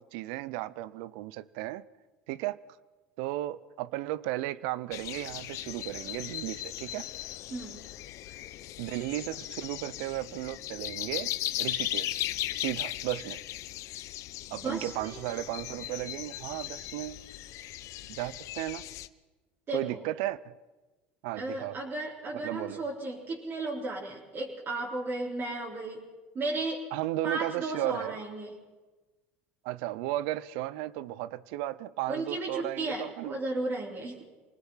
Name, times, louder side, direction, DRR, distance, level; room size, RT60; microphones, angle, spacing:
voice 1, 0.0-1.8 2.3-2.6 3.2-7.1 8.8-12.2 12.6-13.4 14.5-17.2 18.1-18.9 19.7-20.5 21.2-21.8 22.3-22.8 26.9-28.2 29.6-33.4, right 15 dB, 75° right, 0.7 m, -35 dB
sound 1, 4.9-19.1, left 15 dB, 60° left, 0.9 m, -37 dB
voice 2, 14.5-15.2 19.7-20.0 21.4-26.0 26.3-26.8 27.2-28.5 32.1-34.2, right 2 dB, 40° right, 4.1 m, -34 dB
25.5 x 19.5 x 5.8 m
supercardioid pair, 95°, 6 cm